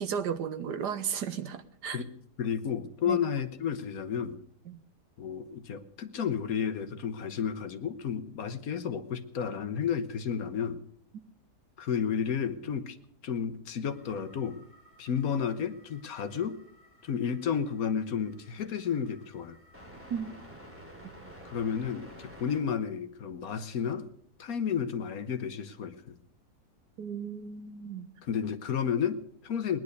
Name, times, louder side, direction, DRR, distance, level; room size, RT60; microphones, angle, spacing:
voice 1, 0.0-2.0 3.0-3.2 4.7-4.8 20.1-20.3 27.0-28.1, right 7 dB, 80° right, 11 dB, 1.6 m, -34 dB
voice 2, 2.4-4.4 5.2-10.8 11.8-13.0 13.2-14.6 15.0-16.6 17.0-19.6 21.4-24.1 24.4-26.2 28.2-29.8, left 7 dB, 60° left, 11 dB, 1.3 m, -32 dB
sound 1, 13.9-22.6, equal, 5° right, 3.2 m, -52 dB
19.0 x 10.5 x 6.6 m, 0.71 s
omnidirectional pair, 1.8 m